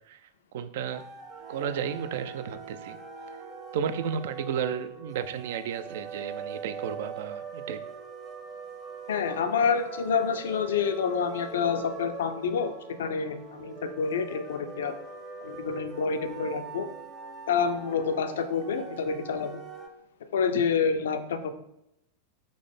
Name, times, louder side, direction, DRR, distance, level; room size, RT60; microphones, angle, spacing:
voice 1, 0.5-1.0 1.5-3.0 3.7-7.8, right 7 dB, 55° right, 11 dB, 0.3 m, -33 dB
sound 1, 0.9-19.9, right 5 dB, 20° right, 0.7 m, -42 dB
voice 2, 9.1-14.9 15.4-16.9 17.5-19.6 20.3-21.5, left 6 dB, 60° left, 9 dB, 0.4 m, -28 dB
3.8 x 3.1 x 3.5 m, 0.83 s
figure-of-eight pair, 90°, 0 cm